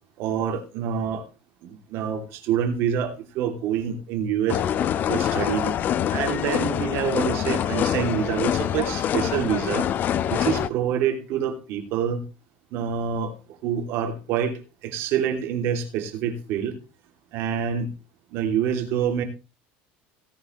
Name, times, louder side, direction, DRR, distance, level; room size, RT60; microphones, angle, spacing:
voice 1, 0.2-1.3 1.6-4.6 5.1-5.7 6.1-9.9 10.3-12.2 12.7-16.8 17.3-17.9 18.3-19.2, right 8 dB, 55° right, 5 dB, 2.9 m, -26 dB
sound 1, 4.5-10.7, left 10 dB, 40° left, 0.9 m, -25 dB
17.5 x 9.5 x 3.2 m, 0.30 s
cardioid pair, 140°, 5 cm